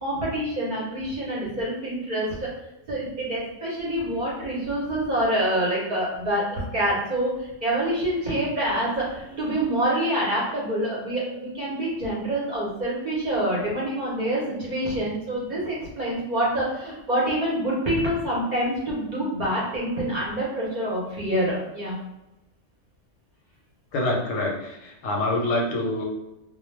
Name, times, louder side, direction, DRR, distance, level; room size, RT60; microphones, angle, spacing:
voice 1, 0.0-2.5 2.9-22.0, right 1 dB, 45° right, -6 dB, 0.6 m, -26 dB
voice 2, 23.9-26.0, left 2 dB, 85° left, 0 dB, 1.0 m, -26 dB
2.3 x 2.1 x 3.1 m, 0.93 s
omnidirectional pair, 1.3 m